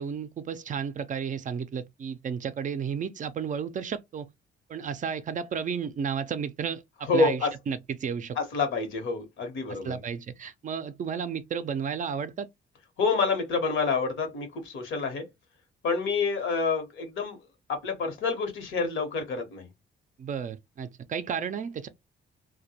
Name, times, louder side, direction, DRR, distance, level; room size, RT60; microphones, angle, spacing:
voice 1, 0.0-4.3 4.7-8.4 9.7-12.5 20.2-21.9, right 7 dB, 40° right, 0.4 m, -33 dB
voice 2, 7.1-7.5 8.4-10.0 13.0-15.2 15.8-17.4 17.7-19.7, left 4 dB, 75° left, 1.0 m, -28 dB
2.1 x 2.1 x 2.7 m
cardioid pair, 90°, 20 cm